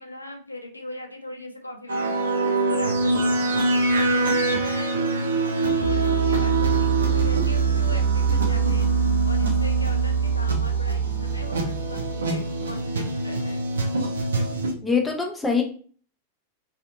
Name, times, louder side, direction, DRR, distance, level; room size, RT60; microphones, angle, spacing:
voice 1, 0.0-2.1 2.4-8.9 9.3-13.6, left 1 dB, 85° left, 4 dB, 0.4 m, -40 dB
sound 1, 1.9-14.7, right 4 dB, 70° right, 0.5 m, -23 dB
voice 2, 14.8-15.6, left 5 dB, 10° left, 2 dB, 0.5 m, -23 dB
2.6 x 2.5 x 2.3 m, 0.44 s
figure-of-eight pair, 90°, 0 cm